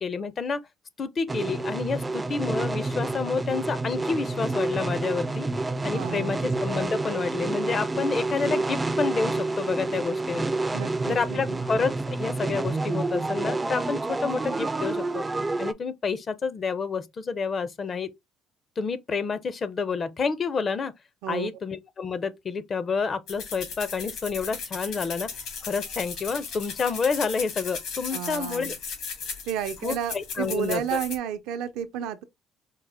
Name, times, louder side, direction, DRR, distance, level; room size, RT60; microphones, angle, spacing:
voice 1, 0.0-0.6 1.0-5.5 5.8-10.5 11.1-15.2 15.6-18.1 18.8-20.9 21.3-25.3 25.6-28.7 29.8-31.0, left 5 dB, 35° left, 0.5 m, -29 dB
sound 1, 1.3-15.7, right 2 dB, 15° right, 0.3 m, -29 dB
voice 2, 5.9-6.4 10.7-11.6 21.2-21.5 28.1-28.7 29.5-32.2, right 10 dB, 90° right, 0.6 m, -32 dB
sound 2, 23.3-31.2, left 5 dB, 75° left, 2.1 m, -36 dB
4.6 x 2.1 x 3.3 m
cardioid pair, 110°, 0 cm